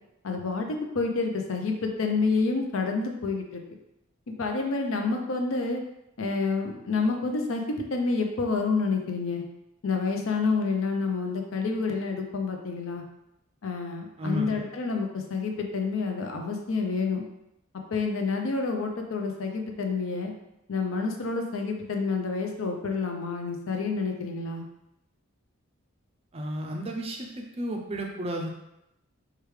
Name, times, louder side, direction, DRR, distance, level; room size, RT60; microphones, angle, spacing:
voice 1, 0.2-3.6 4.3-5.8 6.2-9.4 9.8-13.0 13.6-17.2 17.9-20.3 20.7-24.6, left 4 dB, 65° left, 3 dB, 0.5 m, -28 dB
voice 2, 14.2-14.6 26.3-28.5, equal, 25° right, 1 dB, 0.4 m, -32 dB
4.8 x 2.3 x 3.2 m, 0.85 s
head